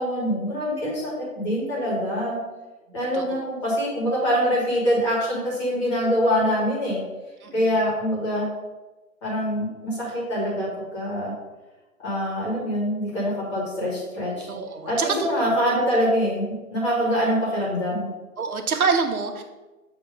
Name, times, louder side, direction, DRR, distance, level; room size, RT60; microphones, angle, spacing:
voice 1, 0.0-2.4 2.9-7.0 7.5-8.5 9.2-11.3 12.0-14.5 14.8-18.1, equal, 20° left, -5 dB, 1.6 m, -24 dB
voice 2, 3.1-3.5 7.4-7.8 14.5-15.3 16.9-17.1 18.4-19.4, right 5 dB, 75° right, 5 dB, 1.0 m, -26 dB
7.1 x 3.0 x 5.0 m, 1.2 s
hypercardioid pair, 170°, 44 cm